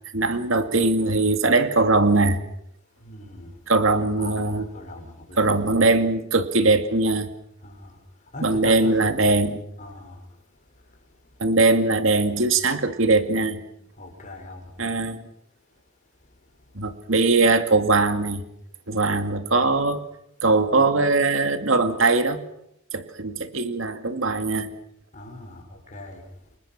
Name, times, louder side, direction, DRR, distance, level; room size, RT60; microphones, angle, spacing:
voice 1, 0.1-2.4 3.7-4.7 5.4-7.3 8.4-9.6 11.4-13.6 14.8-15.3 16.7-18.4 18.9-20.0 20.4-22.4 22.9-24.7, right 3 dB, 70° right, 7 dB, 2.2 m, -21 dB
voice 2, 3.0-5.6 7.6-9.0 9.8-11.4 13.9-14.9 16.2-17.0 25.1-26.5, left 1 dB, 40° left, 2 dB, 6.2 m, -42 dB
29.5 x 22.0 x 6.0 m, 0.75 s
head